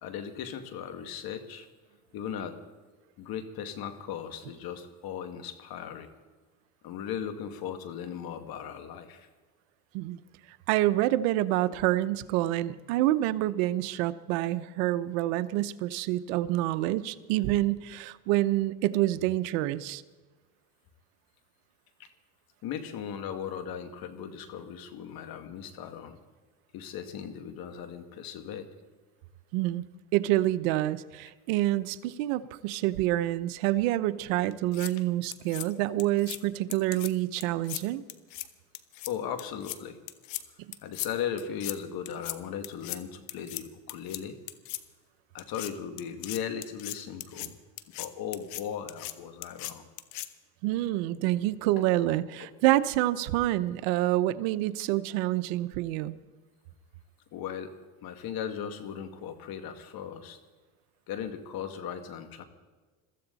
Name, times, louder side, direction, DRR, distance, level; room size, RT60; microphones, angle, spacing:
voice 1, 0.0-1.7 2.1-2.6 3.2-6.1 6.8-9.3 22.0-22.1 22.6-26.2 26.7-28.7 39.1-40.0 40.8-44.4 45.3-47.6 48.0-49.9 52.4-52.5 57.3-57.7 58.0-60.4 61.1-62.4, left 8 dB, 65° left, 8 dB, 2.2 m, -37 dB
voice 2, 10.7-20.0 29.5-29.8 30.1-38.0 50.6-56.2, right 15 dB, 90° right, 15 dB, 0.8 m, -27 dB
sound 1, 34.5-34.9 35.3-35.7 36.0-36.4 36.7-37.1 37.4-37.8 38.1-38.5 38.7-39.1 39.4-39.8 40.1-40.4 40.7-41.1 41.4-41.8 42.1-42.4 42.6-43.0 43.3-43.6 43.9-44.2 44.5-44.8 45.4-45.7 46.0-47.5 47.8-48.1 48.3-48.6 48.9-49.1 49.4-49.7 50.0-50.3, left 17 dB, 85° left, 1.1 m, -37 dB
22.5 x 14.0 x 4.1 m, 1.3 s
supercardioid pair, 100°, 39 cm